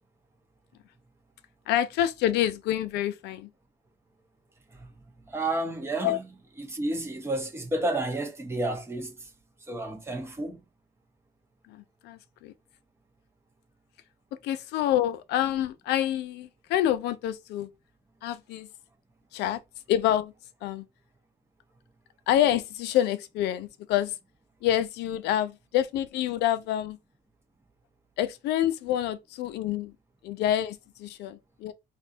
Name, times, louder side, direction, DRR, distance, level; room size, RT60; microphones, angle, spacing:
voice 1, 1.7-3.5 6.0-6.2 11.7-12.5 14.4-17.7 18.2-18.7 19.3-19.6 19.9-20.3 20.6-20.8 22.3-24.2 24.6-27.0 28.2-29.9 30.2-31.7, left 12 dB, 85° left, 0.6 m, -27 dB
voice 2, 5.3-6.3 6.6-9.1 9.7-10.6, right 2 dB, 15° right, 1.2 m, -31 dB
4.1 x 2.6 x 4.3 m
cardioid pair, 110°, 17 cm